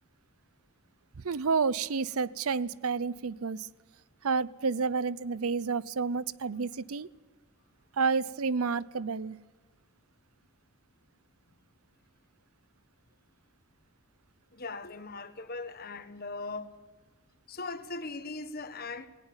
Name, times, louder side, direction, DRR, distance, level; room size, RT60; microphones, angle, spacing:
voice 1, 1.2-3.7 4.2-7.1 8.0-9.4, right 5 dB, 85° right, 0.7 m, -30 dB
voice 2, 14.5-16.8 17.5-19.1, left 3 dB, 45° left, 1.5 m, -39 dB
19.5 x 17.5 x 8.9 m
head